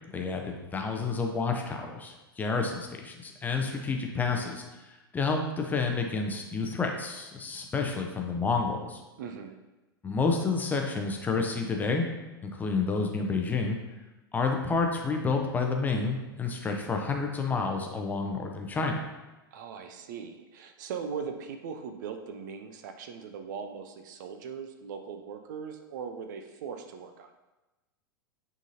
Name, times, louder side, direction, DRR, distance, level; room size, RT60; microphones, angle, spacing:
voice 1, 0.1-9.0 10.0-12.1 12.4-13.8 14.3-19.0, left 4 dB, 15° left, 2 dB, 0.7 m, -29 dB
voice 2, 9.2-9.6 19.5-27.3, right 6 dB, 50° right, 7 dB, 0.6 m, -39 dB
9.0 x 3.9 x 2.7 m, 1.1 s
figure-of-eight pair, 95°, 12 cm